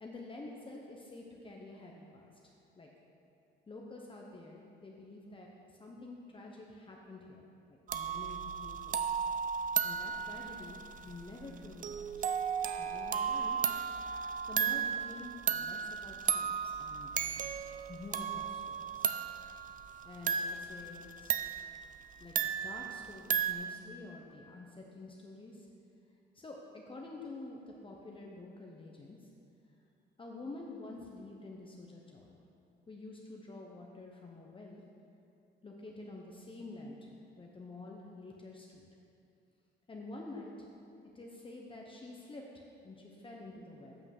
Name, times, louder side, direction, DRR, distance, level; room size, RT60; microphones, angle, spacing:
voice 1, 0.0-2.3 2.8-2.9 3.7-9.1 9.8-12.3 12.8-13.6 14.5-17.4 17.9-19.1 20.0-21.4 22.2-25.7 26.3-29.3 30.2-32.4 32.9-34.8 35.6-37.1 37.4-38.9 39.9-40.7 41.1-44.0, left 2 dB, 25° left, -1 dB, 0.9 m, -48 dB
sound 1, 7.9-23.5, right 7 dB, 40° right, 0.4 m, -35 dB
7.9 x 5.8 x 5.9 m, 2.6 s
cardioid pair, 90°, 20 cm